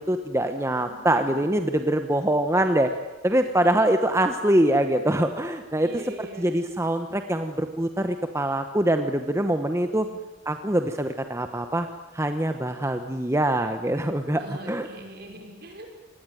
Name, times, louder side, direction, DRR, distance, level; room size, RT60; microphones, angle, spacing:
voice 1, 0.0-2.9 3.2-5.9 6.4-10.1 10.4-11.9 12.1-14.4 14.7-14.9, right 1 dB, 15° right, 7 dB, 1.1 m, -24 dB
voice 2, 0.8-1.6 5.8-6.6 10.0-10.1 14.4-16.0, right 1 dB, 55° right, 3 dB, 5.7 m, -42 dB
26.0 x 20.5 x 9.3 m, 1.2 s
head